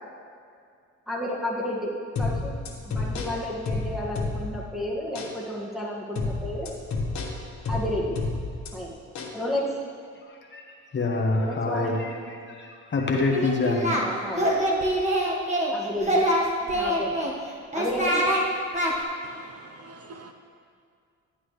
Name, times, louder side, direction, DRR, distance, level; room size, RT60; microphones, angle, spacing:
voice 1, 1.1-1.9 2.2-2.5 2.8-6.7 7.7-8.2 8.7-8.9 9.3-9.7 11.3-12.0 13.9-14.5 15.7-16.3 16.7-17.1 17.7-18.2, left 1 dB, ahead, -4 dB, 1.9 m, -31 dB
sound 1, 2.2-4.7 5.2-5.3 6.2-8.7 9.2-9.4, left 3 dB, 65° left, 1.4 m, -30 dB
voice 2, 10.3-10.6 10.9-13.9, left 3 dB, 40° left, 0 dB, 1.2 m, -26 dB
Singing, 13.3-14.0 14.3-15.7 16.0-17.3 17.7-18.4 18.7-18.9, right 1 dB, 25° right, 1.6 m, -24 dB
voice 3, 19.2-20.3, right 3 dB, 55° right, 5 dB, 0.7 m, -46 dB
11.5 x 8.6 x 3.3 m, 2.3 s
cardioid pair, 90°, 30 cm